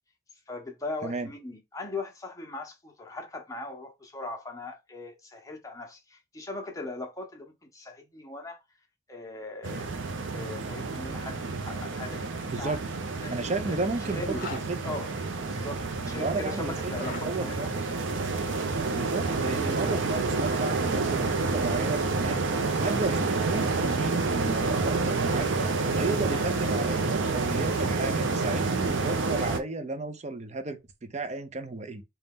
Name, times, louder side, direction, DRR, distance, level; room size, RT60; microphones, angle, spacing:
voice 1, 0.5-8.6 9.1-9.9 10.3-12.8 13.2-13.8 14.2-14.4 14.8-15.1 15.5-17.7, left 2 dB, 15° left, 0.8 m, -39 dB
sound 1, 9.6-29.6, right 3 dB, 80° right, 0.6 m, -29 dB
voice 2, 13.3-14.2 14.5-15.0 16.0-17.9 18.9-22.5 22.8-32.0, right 3 dB, 35° right, 0.6 m, -33 dB
Zipper (clothing), 14.2-14.7 16.8-17.3 19.4-20.3 22.1-23.2, left 4 dB, 50° left, 0.9 m, -42 dB
4.0 x 2.3 x 3.5 m
head